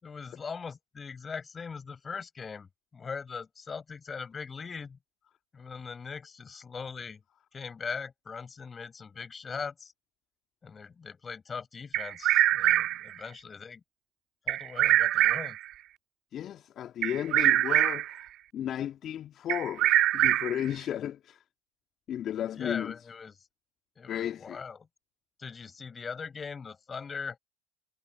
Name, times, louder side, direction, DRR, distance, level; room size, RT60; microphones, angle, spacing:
voice 1, 0.0-5.0 5.5-7.2 7.5-9.9 10.6-13.8 14.5-15.6 22.6-23.3 24.0-24.9 25.4-27.4, left 5 dB, 25° left, 5.9 m, -40 dB
Bird vocalization bird call bird song, 11.9-13.1 14.5-15.7 17.0-18.2 19.5-20.7, right 14 dB, 50° right, 1.8 m, -24 dB
voice 2, 16.3-18.3 18.5-21.4 22.1-22.9 24.1-24.6, left 10 dB, 40° left, 1.7 m, -34 dB
hypercardioid pair, 75°, 0 cm